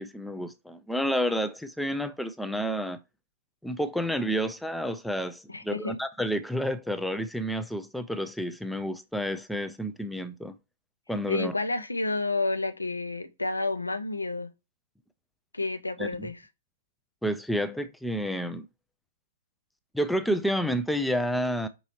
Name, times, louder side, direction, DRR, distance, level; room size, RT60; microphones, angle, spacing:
voice 1, 0.0-3.0 3.6-10.6 11.1-11.5 16.0-16.3 17.2-18.7 19.9-21.7, equal, ahead, 0.3 m, -30 dB
voice 2, 5.5-6.0 11.3-14.5 15.5-16.4, left 2 dB, 80° left, 0.5 m, -30 dB
5.4 x 3.0 x 3.0 m
figure-of-eight pair, 115°, 0 cm